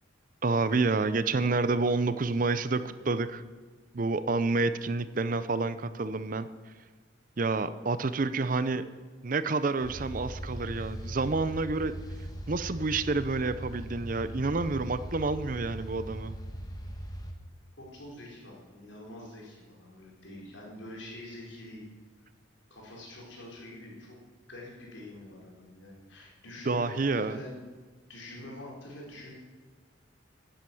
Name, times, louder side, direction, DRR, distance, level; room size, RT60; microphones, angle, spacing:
voice 1, 0.4-3.4 3.9-6.5 7.4-8.8 9.2-11.9 12.5-16.3 26.7-27.4, right 3 dB, 40° right, 13 dB, 0.5 m, -28 dB
sound 1, 9.8-17.3, equal, 20° left, 1.4 m, -40 dB
voice 2, 17.8-21.8 22.7-24.2 24.5-27.6 28.1-29.3, left 1 dB, 65° left, -2 dB, 4.2 m, -45 dB
11.5 x 10.0 x 7.7 m, 1.4 s
head